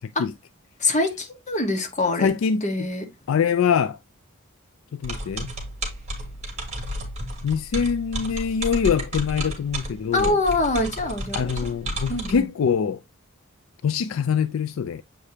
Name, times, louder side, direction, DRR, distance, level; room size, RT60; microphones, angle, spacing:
voice 1, 0.8-2.3 2.6-3.0 10.1-11.7 12.1-12.5, left 2 dB, 35° left, 1.5 m, -24 dB
voice 2, 2.2-2.9 3.3-4.0 4.9-5.5 7.4-10.4 11.3-13.0 13.8-15.0, left 7 dB, 70° left, 0.4 m, -24 dB
sound 1, 5.0-12.4, right 1 dB, 35° right, 2.6 m, -32 dB
7.6 x 4.9 x 2.8 m
head